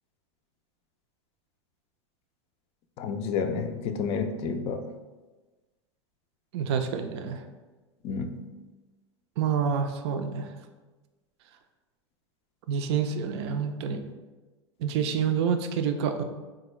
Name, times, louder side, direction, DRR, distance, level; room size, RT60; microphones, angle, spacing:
voice 1, 3.0-4.9 8.0-8.4, left 5 dB, 40° left, 7 dB, 0.4 m, -30 dB
voice 2, 6.5-7.4 9.4-10.5 12.7-14.0 14.8-16.2, right 7 dB, 60° right, 7 dB, 0.4 m, -28 dB
3.6 x 2.2 x 3.1 m, 1.2 s
hypercardioid pair, 90°, 15 cm